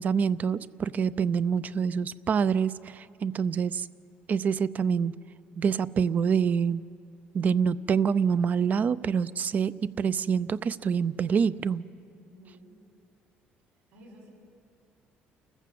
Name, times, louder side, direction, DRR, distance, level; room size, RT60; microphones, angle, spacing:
voice 1, 0.0-3.9 4.3-5.1 5.6-6.8 7.3-11.8, right 6 dB, 45° right, 17 dB, 0.6 m, -26 dB
voice 2, 12.1-12.8 13.9-14.3, equal, 90° right, -2 dB, 6.3 m, -52 dB
29.5 x 14.5 x 7.7 m, 2.5 s
cardioid pair, 100°, 4 cm